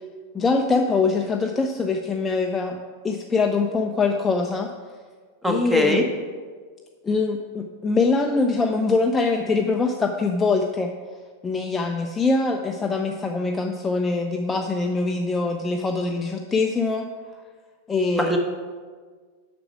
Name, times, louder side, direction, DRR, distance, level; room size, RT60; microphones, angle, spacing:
voice 1, 0.3-2.8 3.0-4.7 5.4-6.0 7.0-10.9 11.4-17.1 17.9-18.4, left 3 dB, 15° left, 3 dB, 0.5 m, -23 dB
voice 2, 5.4-6.0 18.3-18.4, equal, 5° right, 2 dB, 1.2 m, -21 dB
7.9 x 6.0 x 6.0 m, 1.5 s
figure-of-eight pair, 90°, 0 cm